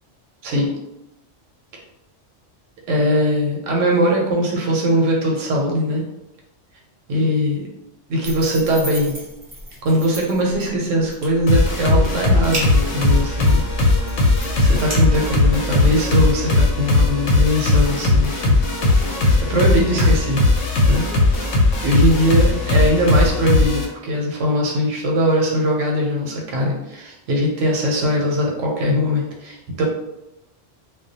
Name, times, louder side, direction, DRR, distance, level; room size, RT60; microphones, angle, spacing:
voice 1, 2.9-6.1 7.1-7.7 8.1-9.2 9.8-13.6 14.6-18.6 19.5-20.4 20.9-21.1 21.8-29.8, equal, 85° right, -1 dB, 1.0 m, -20 dB
sound 1, 8.2-15.6, equal, 30° right, 0.7 m, -34 dB
sound 2, 11.5-23.8, left 2 dB, 90° left, 1.0 m, -18 dB
2.3 x 2.2 x 2.7 m, 0.91 s
omnidirectional pair, 1.3 m